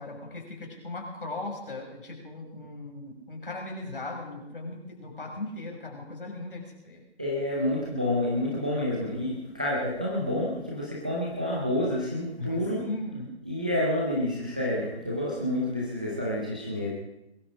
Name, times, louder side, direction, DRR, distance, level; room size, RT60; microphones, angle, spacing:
voice 1, 0.0-7.0 12.4-13.3, left 2 dB, 50° left, 1 dB, 5.9 m, -38 dB
voice 2, 7.2-12.8 13.4-16.9, left 1 dB, 5° right, -5 dB, 0.7 m, -29 dB
22.0 x 13.0 x 5.0 m, 0.87 s
figure-of-eight pair, 160°, 34 cm